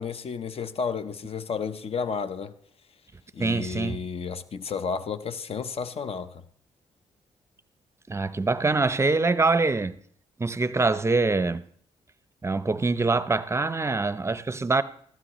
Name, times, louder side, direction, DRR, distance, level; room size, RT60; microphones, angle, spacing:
voice 1, 0.0-2.5 3.3-6.3, left 6 dB, 50° left, 0.7 m, -32 dB
voice 2, 3.4-4.0 8.1-10.0 10.4-11.7 12.4-14.8, right 3 dB, 20° right, 0.6 m, -24 dB
15.0 x 12.5 x 3.1 m
supercardioid pair, 60°, 12 cm